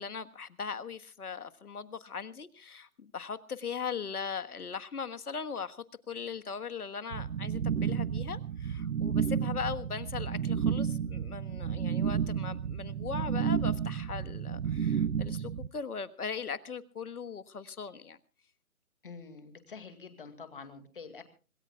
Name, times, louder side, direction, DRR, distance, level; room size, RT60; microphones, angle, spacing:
voice 1, 0.0-18.2, left 6 dB, 80° left, 1.5 m, -39 dB
sound 1, 7.1-15.7, right 7 dB, 75° right, 0.9 m, -31 dB
voice 2, 19.0-21.2, left 5 dB, 35° left, 2.2 m, -47 dB
26.5 x 18.5 x 2.3 m
hypercardioid pair, 175°, 45 cm